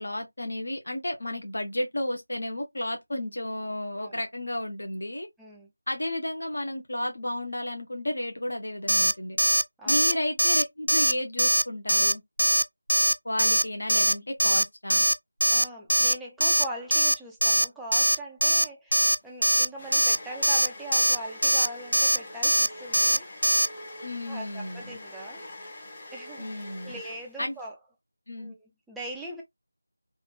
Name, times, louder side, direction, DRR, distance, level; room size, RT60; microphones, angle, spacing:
voice 1, 0.0-5.3 5.9-9.4 9.9-12.2 13.2-15.1 24.0-25.0 26.4-27.0 27.4-27.6 28.3-28.5, left 1 dB, 60° left, 1.0 m, -32 dB
voice 2, 5.4-5.7 9.8-10.2 15.5-23.3 24.3-25.5 26.1-27.8 28.4-29.4, right 1 dB, ahead, 0.4 m, -41 dB
Alarm, 8.9-9.1 9.4-9.6 9.9-10.1 10.4-10.6 10.9-11.1 11.4-11.6 11.9-12.1 12.4-12.6 12.9-13.1 13.4-13.6 13.9-14.1 14.4-14.6 14.9-15.1 15.4-15.6 15.9-16.1 16.4-16.6 16.9-17.1 17.4-17.6 17.9-18.1 18.4-18.6 18.9-19.1 19.4-19.6 19.9-20.2 20.4-20.7 20.9-21.2 21.4-21.7 21.9-22.2 22.4-22.7 22.9-23.2 23.4-23.7, right 1 dB, 80° right, 0.3 m, -21 dB
sound 1, 19.0-27.7, left 1 dB, 20° left, 0.8 m, -44 dB
3.4 x 2.4 x 2.4 m
figure-of-eight pair, 165°, 0 cm